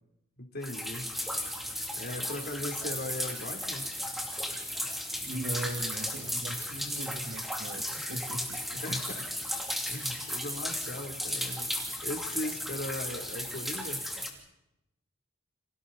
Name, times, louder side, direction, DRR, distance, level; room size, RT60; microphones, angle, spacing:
voice 1, 0.4-1.1 1.9-3.9 6.5-6.6 8.8-9.3 9.9-11.7 12.0-14.0, left 1 dB, 50° left, 2 dB, 3.5 m, -38 dB
sound 1, 0.6-14.3, equal, ahead, 2.9 m, -35 dB
voice 2, 5.2-8.8, right 1 dB, 60° right, 4 dB, 2.1 m, -39 dB
30.0 x 26.5 x 4.2 m, 0.90 s
head